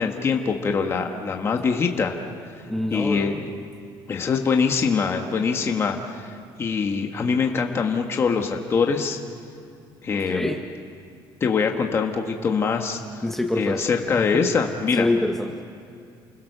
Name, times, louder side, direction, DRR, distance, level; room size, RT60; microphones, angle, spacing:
voice 1, 0.0-2.1 2.9-3.5 4.1-6.3 6.6-9.2 10.0-10.5 11.4-13.2 13.6-15.1, left 5 dB, 25° left, 3 dB, 1.4 m, -23 dB
voice 2, 2.7-3.4 10.1-10.6 13.2-13.8 14.2-14.5 14.9-15.6, left 1 dB, 5° left, 3 dB, 1.0 m, -26 dB
29.0 x 21.5 x 6.7 m, 2.4 s
cardioid pair, 170°, 9 cm